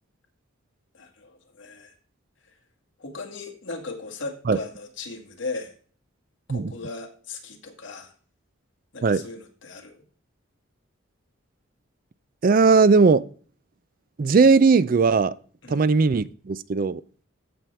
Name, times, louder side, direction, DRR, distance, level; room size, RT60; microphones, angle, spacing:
voice 1, 0.9-1.9 3.0-5.7 6.5-8.1 8.9-10.0 15.6-15.8, left 3 dB, 65° left, 2.0 m, -37 dB
voice 2, 12.4-13.2 14.2-15.3 15.7-17.0, right 4 dB, 45° right, 0.4 m, -18 dB
14.5 x 6.0 x 3.3 m
head